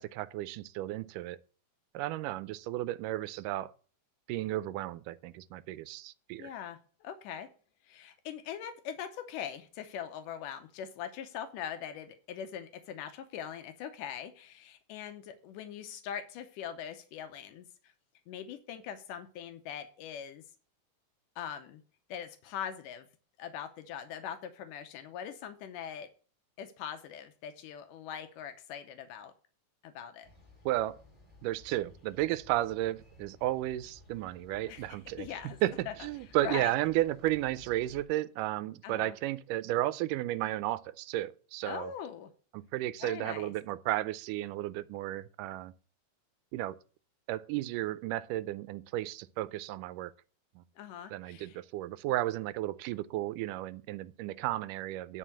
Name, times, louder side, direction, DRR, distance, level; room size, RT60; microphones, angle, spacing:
voice 1, 0.0-1.4 1.9-3.7 4.3-6.5 30.7-31.0 31.4-35.3 35.6-41.9 42.5-45.7 46.5-46.8 47.3-50.1 50.6-50.7 51.1-55.2, right 15 dB, 85° right, 2.2 m, -33 dB
voice 2, 6.4-7.5 7.8-17.9 18.3-20.4 21.4-21.8 22.1-23.1 23.4-26.1 26.6-29.3 29.8-30.3 34.7-35.6 35.9-36.0 36.4-36.7 38.8-39.2 41.7-42.3 43.0-43.5 50.8-51.6, left 9 dB, 85° left, 2.3 m, -42 dB
sound 1, 30.2-38.1, left 1 dB, 10° left, 3.9 m, -57 dB
10.0 x 4.6 x 7.5 m
omnidirectional pair, 3.7 m